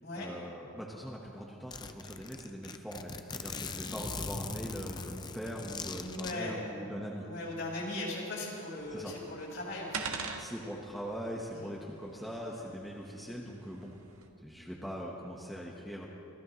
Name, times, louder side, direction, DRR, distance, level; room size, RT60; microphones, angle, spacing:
voice 1, 0.2-7.2 8.9-9.1 10.4-13.9 14.4-16.1, equal, ahead, -4 dB, 1.3 m, -41 dB
Zipper (clothing), 0.9-1.0 1.3-1.4 1.7-6.3, left 4 dB, 20° left, 0.5 m, -40 dB
voice 2, 6.0-6.6 7.2-10.1 11.5-11.7, left 2 dB, 55° left, -4 dB, 5.1 m, -38 dB
sound 1, 8.8-14.3, right 4 dB, 80° right, 1.6 m, -45 dB
26.0 x 16.5 x 3.2 m, 2.6 s
head